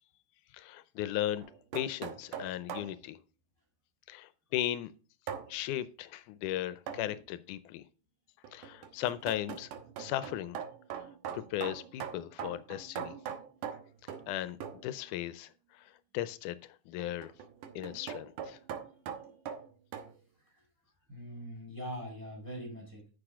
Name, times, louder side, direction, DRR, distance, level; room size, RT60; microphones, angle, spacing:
voice 1, 0.5-1.5 1.7-3.2 4.1-4.9 5.5-7.8 8.5-9.7 10.0-10.6 11.3-13.2 14.3-16.6 16.9-17.3 17.8-18.6, left 13 dB, 85° left, 2.1 m, -36 dB
sound 1, 1.4-3.0 5.3-5.5 6.9-7.1 8.4-14.3 14.6-14.9 17.0-20.1, right 8 dB, 90° right, 2.6 m, -42 dB
voice 2, 21.1-23.1, equal, 5° right, 4.4 m, -43 dB
9.9 x 6.6 x 3.6 m
omnidirectional pair, 3.5 m